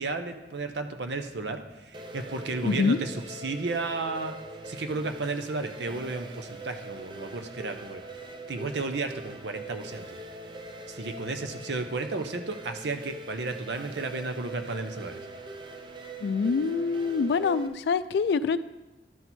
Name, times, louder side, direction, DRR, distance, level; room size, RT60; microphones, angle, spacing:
voice 1, 0.0-4.4 4.6-8.0 8.5-10.2 10.9-15.2, right 3 dB, 80° right, 7 dB, 0.7 m, -33 dB
sound 1, 1.9-17.7, right 2 dB, 25° right, 0.4 m, -43 dB
voice 2, 2.6-3.0 16.2-18.6, left 5 dB, 70° left, 14 dB, 0.3 m, -25 dB
12.0 x 4.4 x 4.1 m, 1.1 s
head